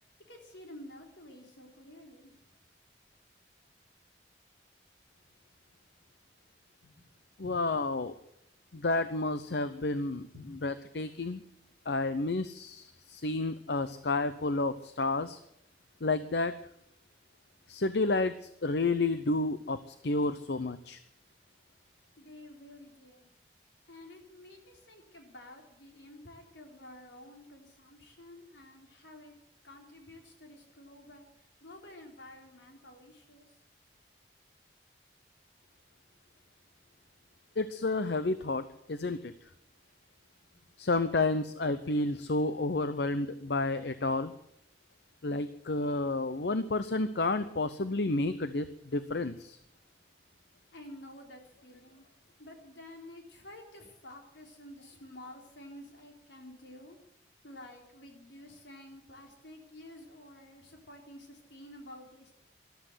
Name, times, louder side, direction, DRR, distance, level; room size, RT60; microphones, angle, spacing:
voice 1, 0.3-2.4 6.8-6.9 7.4-7.6 10.5-10.6 22.2-23.3 23.9-29.3 29.6-31.2 31.6-33.4 40.5-40.6 50.7-52.1 52.4-57.0 57.4-62.3, left 1 dB, 80° left, 2 dB, 3.7 m, -51 dB
voice 2, 7.4-8.1 8.7-10.3 10.6-11.4 11.9-15.4 16.0-16.5 17.7-21.0 37.6-39.3 40.8-44.3 45.2-48.7 48.9-49.6, left 2 dB, 65° left, 12 dB, 0.7 m, -30 dB
14.0 x 13.0 x 8.1 m, 0.75 s
head